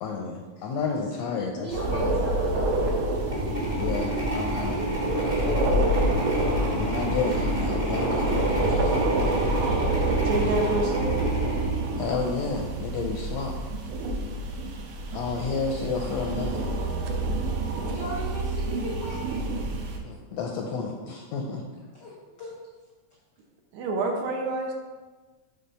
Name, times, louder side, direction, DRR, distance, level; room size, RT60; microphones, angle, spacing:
voice 1, 0.0-2.2 3.8-5.5 6.7-9.1 12.0-13.6 15.1-16.7 20.0-21.6, left 4 dB, 80° left, 1 dB, 1.6 m, -31 dB
voice 2, 1.2-3.0 17.9-19.4 21.9-22.1 22.4-22.6, left 1 dB, 65° left, -5 dB, 1.1 m, -38 dB
sound 1, 1.7-20.0, right 2 dB, 90° right, 2.3 m, -27 dB
sound 2, 3.2-12.6, equal, 20° right, 1.0 m, -31 dB
sound 3, 5.1-11.6, equal, 40° right, 1.4 m, -42 dB
voice 3, 7.0-7.3 10.1-11.2 23.7-24.7, right 2 dB, 70° right, 2 dB, 2.0 m, -28 dB
7.7 x 3.5 x 5.4 m, 1.3 s
omnidirectional pair, 3.5 m